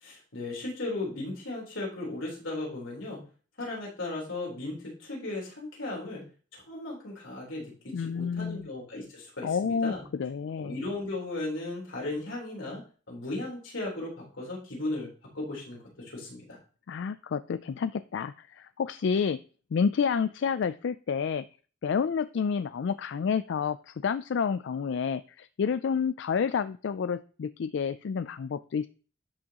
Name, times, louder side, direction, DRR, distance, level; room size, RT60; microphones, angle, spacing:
voice 1, 0.0-3.2 3.6-6.2 6.5-10.0 10.6-12.8 13.1-15.1 15.3-16.6, left 2 dB, 90° left, -2 dB, 3.8 m, -36 dB
voice 2, 7.9-8.7 9.4-10.8 16.9-19.4 19.7-21.5 21.8-28.9, left 6 dB, 65° left, 14 dB, 0.4 m, -29 dB
11.5 x 6.2 x 2.9 m, 0.38 s
head